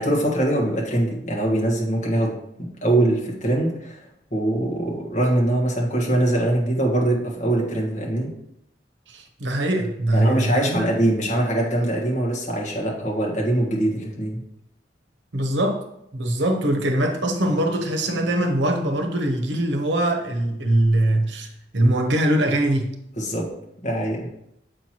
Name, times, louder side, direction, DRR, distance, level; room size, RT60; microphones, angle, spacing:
voice 1, 0.0-4.0 4.3-8.3 10.1-14.4 23.2-23.5 23.8-24.3, right 1 dB, 40° left, -2 dB, 1.5 m, -23 dB
voice 2, 9.1-10.9 15.3-15.9 16.1-22.9, right 1 dB, 85° right, 4 dB, 0.9 m, -22 dB
7.9 x 4.5 x 2.9 m, 0.78 s
head